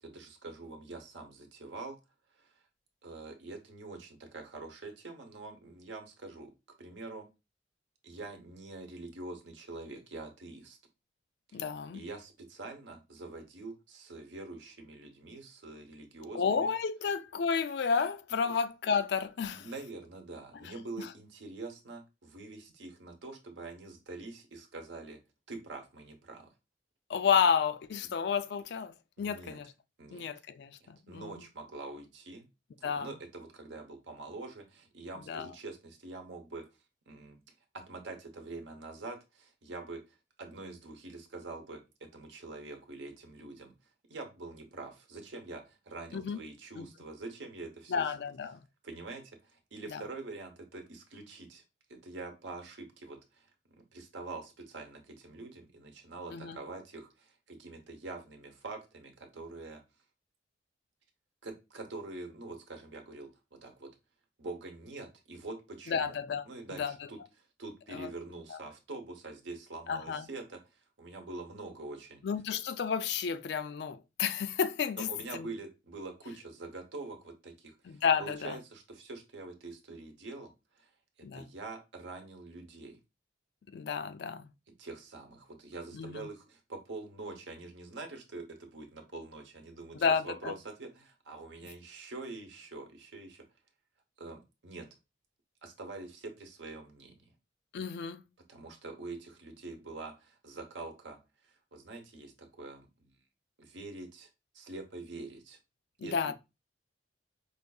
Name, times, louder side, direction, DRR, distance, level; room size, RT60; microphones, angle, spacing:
voice 1, 0.0-2.0 2.3-2.5 3.0-6.5 6.8-7.3 8.0-10.8 11.5-11.6 11.9-16.7 18.4-18.5 19.5-25.2 25.5-26.5 29.2-29.6 30.0-30.3 30.8-32.5 32.8-36.7 37.1-37.4 37.7-43.7 44.1-48.1 48.8-51.6 51.9-59.8 61.4-63.9 64.4-66.2 66.5-72.2 75.1-80.5 80.7-80.9 81.2-83.0 84.8-93.4 94.2-94.9 95.6-97.3 98.5-103.2 103.6-104.3 104.5-105.6 106.0-106.3, right 3 dB, 75° right, 0.9 m, -45 dB
voice 2, 11.5-12.0 16.3-19.7 20.6-21.1 27.1-29.7 30.1-31.4 32.8-33.1 35.3-35.5 46.1-46.4 46.8-46.9 47.9-48.6 49.9-50.0 56.3-56.6 65.9-66.4 66.8-66.9 67.9-68.1 68.5-68.6 69.9-70.3 72.2-75.5 77.9-78.6 81.2-81.5 83.7-84.5 85.9-86.3 89.9-90.5 97.7-98.2 106.0-106.3, left 6 dB, 60° left, 0.3 m, -31 dB
4.9 x 2.6 x 2.3 m
head